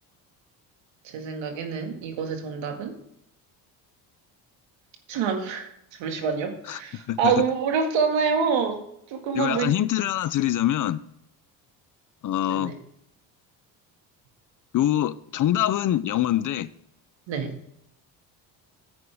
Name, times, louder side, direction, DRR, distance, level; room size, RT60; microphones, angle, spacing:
voice 1, 1.0-2.9 5.1-8.8 9.1-9.7 12.5-12.7 17.3-17.5, right 6 dB, 75° right, 2.1 m, -26 dB
voice 2, 9.3-11.0 12.2-12.7 14.7-16.7, left 12 dB, 45° left, 0.5 m, -24 dB
10.5 x 8.6 x 3.5 m
supercardioid pair, 75°, 46 cm